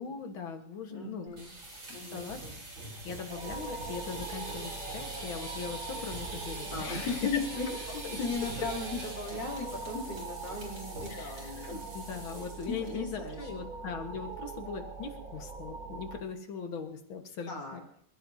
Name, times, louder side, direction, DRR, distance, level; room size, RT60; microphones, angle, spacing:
voice 1, 0.0-1.3 2.1-2.4 3.0-7.2 8.0-8.2 11.1-17.8, left 5 dB, 75° left, 5 dB, 2.2 m, -40 dB
voice 2, 0.9-1.5 1.9-2.3 6.7-11.8 12.4-13.5 17.5-17.8, left 4 dB, 60° left, -1 dB, 3.9 m, -37 dB
sound 1, 1.3-12.9 13.2-13.5 13.8-13.9 14.3-14.7, right 2 dB, 65° right, 4.7 m, -43 dB
sound 2, 3.3-16.2, right 4 dB, 45° right, 3.3 m, -43 dB
27.0 x 15.0 x 2.8 m, 0.66 s
omnidirectional pair, 2.2 m